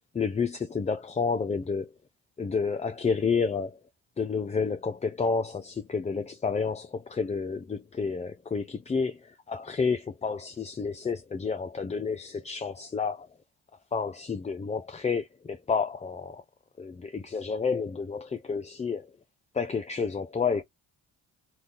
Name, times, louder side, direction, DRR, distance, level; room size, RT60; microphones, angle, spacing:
voice 1, 0.1-1.9 2.4-3.8 4.2-13.3 13.9-16.4 16.8-19.1 19.5-20.6, left 5 dB, 15° left, 0.3 m, -30 dB
2.7 x 2.3 x 3.5 m
supercardioid pair, 50°, 46 cm